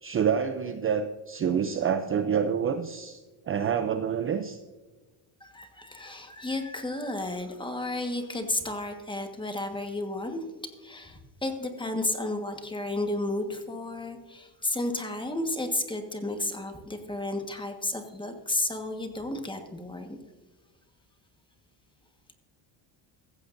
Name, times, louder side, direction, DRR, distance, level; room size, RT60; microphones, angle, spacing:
voice 1, 0.0-4.6, right 7 dB, 30° right, 8 dB, 0.5 m, -27 dB
voice 2, 5.4-10.4 10.8-20.2, left 2 dB, 10° left, 5 dB, 1.4 m, -32 dB
15.5 x 15.0 x 2.6 m, 1.2 s
cardioid pair, 135°, 46 cm